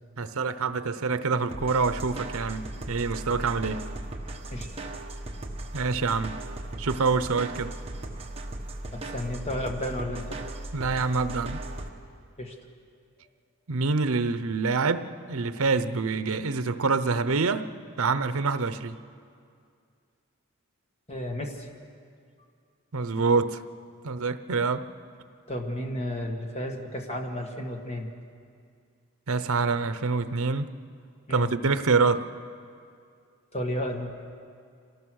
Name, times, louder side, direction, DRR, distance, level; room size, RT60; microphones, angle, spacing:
voice 1, 0.2-3.8 5.7-6.3 6.8-7.7 10.7-11.6 13.7-17.7 18.0-19.0 22.9-23.6 24.0-24.8 29.3-30.7 31.3-32.2, right 4 dB, 75° right, 12 dB, 0.8 m, -26 dB
sound 1, 1.5-11.9, right 1 dB, 25° right, 1.3 m, -37 dB
voice 2, 8.9-10.4 12.4-12.5 21.1-21.7 25.5-28.1 31.3-31.5 33.5-34.1, left 1 dB, 30° left, 2 dB, 1.8 m, -32 dB
26.0 x 18.5 x 6.4 m, 2.3 s
head